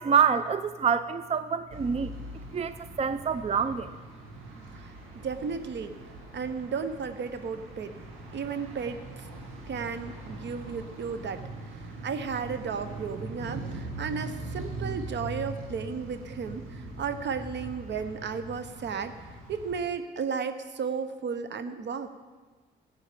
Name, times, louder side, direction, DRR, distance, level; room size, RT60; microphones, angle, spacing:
voice 1, 0.0-2.1 2.5-3.9, right 7 dB, 30° right, 13 dB, 0.5 m, -26 dB
Ambience - City - Evening - Traffic, 1.7-19.8, right 2 dB, 75° right, 2.1 m, -41 dB
voice 2, 5.1-6.0 6.3-7.9 8.3-9.3 9.7-11.4 12.0-22.1, right 6 dB, 60° right, 10 dB, 1.0 m, -34 dB
14.5 x 9.1 x 5.1 m, 1.4 s
supercardioid pair, 55°, 21 cm